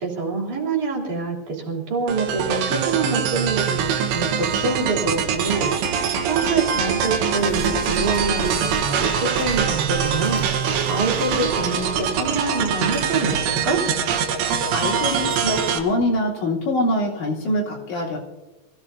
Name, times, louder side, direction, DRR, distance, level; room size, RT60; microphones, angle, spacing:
voice 1, 0.0-5.7 6.3-10.5 10.9-13.8, right 4 dB, 45° right, -4 dB, 4.4 m, -25 dB
sound 1, 2.1-15.8, right 7 dB, 75° right, 3.4 m, -23 dB
sound 2, 6.8-13.8 14.3-14.9 15.8-16.1, right 2 dB, 20° right, 3.3 m, -36 dB
voice 2, 14.7-18.2, left 1 dB, 75° left, -6 dB, 5.8 m, -24 dB
26.0 x 16.5 x 2.8 m, 1.1 s
omnidirectional pair, 5.1 m